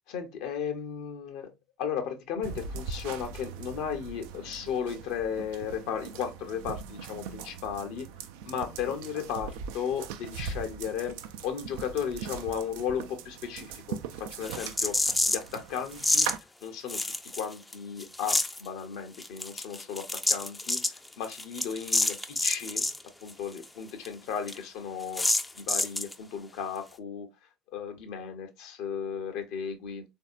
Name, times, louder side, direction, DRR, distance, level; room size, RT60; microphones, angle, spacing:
voice 1, 0.1-1.5 1.8-8.1 8.4-11.2 11.4-15.0 15.3-16.3 16.6-22.8 23.2-25.3 25.5-27.3 27.7-30.0, left 7 dB, 60° left, 0.6 m, -35 dB
sound 1, 2.4-16.4, right 6 dB, 65° right, 0.3 m, -41 dB
sound 2, 14.4-15.5 16.0-16.3 16.9-17.7 18.0-18.6 19.2-23.0 23.3-23.4 23.6-23.7 24.0-24.1 24.5-24.6 25.1-26.1, left 2 dB, 10° left, 0.4 m, -28 dB
3.4 x 2.6 x 2.4 m
figure-of-eight pair, 60°, 0 cm